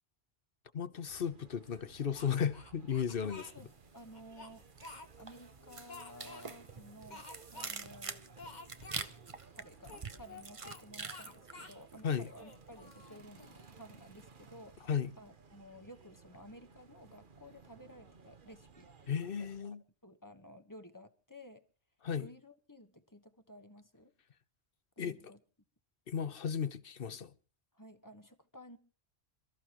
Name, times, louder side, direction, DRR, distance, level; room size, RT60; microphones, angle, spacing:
voice 1, 0.7-3.4 12.0-12.3 14.9-15.1 19.1-19.8 22.0-22.3 25.0-25.2 26.1-27.3, left 7 dB, 60° left, 1.1 m, -35 dB
sound 1, 1.0-19.6, right 5 dB, 50° right, 1.3 m, -59 dB
Speech, 2.1-3.5 4.1-5.4 5.9-6.5 7.1-7.7 8.0-8.1 8.4-9.1 9.8-10.8 11.1-11.8 12.3-13.6, left 3 dB, 45° left, 1.8 m, -51 dB
voice 2, 3.2-3.7 3.9-4.7 5.2-7.3 7.5-8.2 9.5-18.9 19.4-19.8 20.0-21.6 22.2-24.1 25.0-25.4 27.7-28.8, equal, 20° left, 1.3 m, -54 dB
sound 2, 3.6-4.2 4.5-12.4 12.7-13.0, right 4 dB, 30° right, 0.9 m, -46 dB
28.0 x 14.0 x 3.0 m
omnidirectional pair, 1.1 m